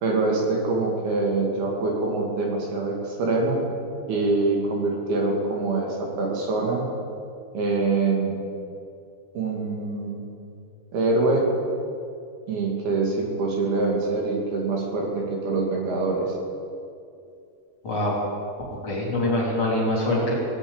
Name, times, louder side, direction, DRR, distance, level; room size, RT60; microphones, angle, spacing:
voice 1, 0.0-3.6 4.1-6.9 7.5-8.3 9.3-10.3 10.9-11.5 12.5-16.3, right 3 dB, 75° right, -1 dB, 4.0 m, -24 dB
voice 2, 17.8-18.2 18.8-20.3, left 1 dB, 35° left, -5 dB, 3.5 m, -24 dB
17.0 x 7.1 x 8.7 m, 2.4 s
omnidirectional pair, 4.5 m